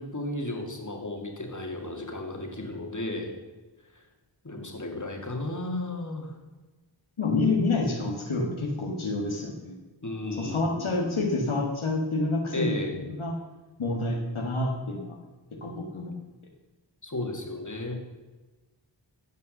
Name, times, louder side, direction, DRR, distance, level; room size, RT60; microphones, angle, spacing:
voice 1, 0.0-3.3 3.9-4.0 4.4-6.3 10.0-11.2 12.5-13.1 17.0-17.9, left 2 dB, 40° left, 2 dB, 2.5 m, -34 dB
voice 2, 7.2-9.7 10.3-13.4 13.8-15.2 15.6-16.1, left 2 dB, 85° left, 0 dB, 1.8 m, -28 dB
16.0 x 5.6 x 6.5 m, 1.2 s
wide cardioid pair, 45°, 47 cm